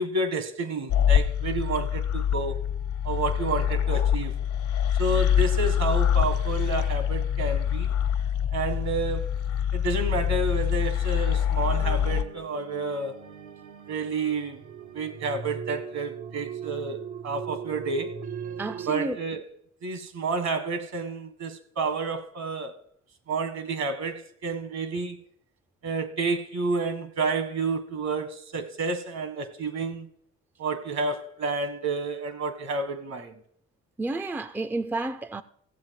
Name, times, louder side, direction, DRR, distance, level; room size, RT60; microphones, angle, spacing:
voice 1, 0.0-2.6 3.0-4.4 5.0-7.9 8.5-13.2 13.9-14.6 14.9-18.1 18.9-19.5 19.8-22.8 23.3-25.2 25.8-30.1 30.6-33.3, right 3 dB, 65° right, 1.6 m, -30 dB
sound 1, 0.9-12.2, left 9 dB, 80° left, 1.1 m, -25 dB
sound 2, 11.6-18.9, right 7 dB, 80° right, 1.3 m, -39 dB
voice 2, 18.6-19.2 34.0-35.4, right 2 dB, 5° right, 0.4 m, -30 dB
16.0 x 7.5 x 4.7 m
cardioid pair, 90°, 30 cm